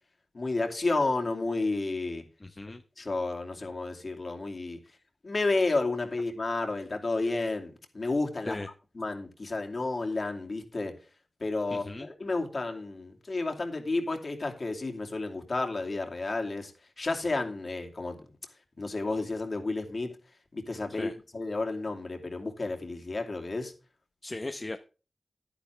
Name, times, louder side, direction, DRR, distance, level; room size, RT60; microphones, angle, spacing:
voice 1, 0.3-2.2 3.0-4.8 5.2-8.6 8.9-10.9 11.4-16.7 17.0-18.2 18.8-20.1 20.5-23.7, left 3 dB, 50° left, 3 dB, 2.6 m, -31 dB
voice 2, 2.4-2.8 8.5-8.7 11.7-12.1 21.0-21.1 24.2-24.8, left 2 dB, 30° left, 6 dB, 0.8 m, -37 dB
11.5 x 10.0 x 3.4 m, 0.34 s
wide cardioid pair, 80°, 0 cm